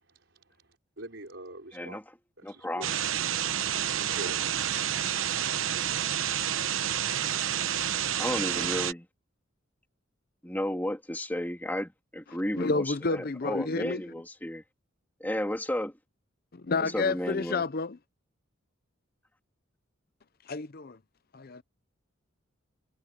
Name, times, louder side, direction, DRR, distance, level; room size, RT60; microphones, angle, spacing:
voice 1, 1.0-2.0 2.4-2.9 3.9-4.7, right 1 dB, 60° right, 5.4 m, -42 dB
voice 2, 1.7-2.0 2.4-3.0 8.2-9.1 10.4-14.6 15.2-15.9 16.8-17.6, left 1 dB, 10° left, 2.9 m, -33 dB
sound 1, 2.8-8.9, right 10 dB, 75° right, 1.0 m, -29 dB
voice 3, 12.5-14.0 16.5-18.0 20.5-21.0 21.3-21.6, left 3 dB, 45° left, 0.6 m, -30 dB
head